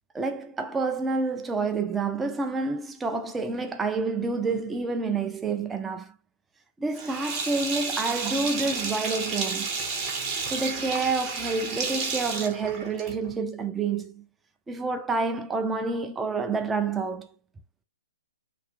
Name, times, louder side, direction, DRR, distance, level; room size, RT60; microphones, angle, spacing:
voice 1, 0.1-6.1 6.8-9.7 10.4-14.2 14.7-17.3, right 4 dB, 10° right, 0.3 m, -28 dB
Sink (filling or washing), 6.9-13.3, right 4 dB, 25° right, 0.7 m, -31 dB
2.8 x 2.4 x 2.4 m
figure-of-eight pair, 125°, 0 cm